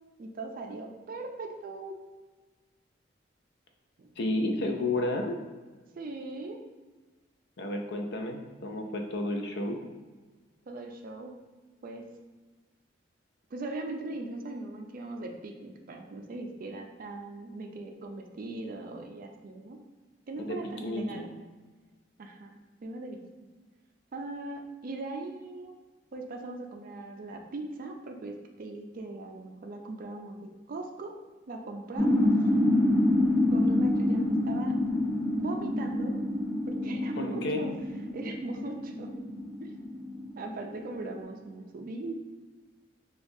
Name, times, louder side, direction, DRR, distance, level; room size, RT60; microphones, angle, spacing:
voice 1, 0.2-1.9 4.0-4.1 6.0-6.6 10.7-11.3 11.8-12.1 13.5-19.8 20.3-21.3 22.2-23.2 24.1-25.7 26.1-30.4 30.7-31.1 31.5-32.3 33.5-34.7 35.4-36.2 36.7-37.7 38.1-39.1 39.6-39.7 40.4-42.3, right 2 dB, 50° right, 4 dB, 0.4 m, -39 dB
voice 2, 4.2-5.5 7.6-9.8 20.4-21.3 37.2-37.7, left 1 dB, 60° left, 3 dB, 0.5 m, -31 dB
sound 1, 32.0-41.2, left 1 dB, ahead, 0.6 m, -27 dB
4.4 x 2.3 x 2.7 m, 1.3 s
head